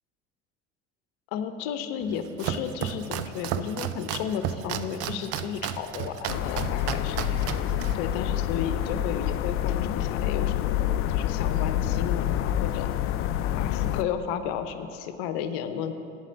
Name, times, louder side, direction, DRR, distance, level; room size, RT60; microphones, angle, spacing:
voice 1, 1.3-7.4 7.9-10.8 11.1-12.9 13.5-15.9, left 8 dB, 60° left, 9 dB, 0.8 m, -33 dB
Domestic sounds home sounds, 2.0-9.0, right 9 dB, 45° right, 0.5 m, -34 dB
sound 1, 6.3-14.0, left 12 dB, 40° left, 0.4 m, -27 dB
8.2 x 8.1 x 6.8 m, 2.7 s
figure-of-eight pair, 60°, 35 cm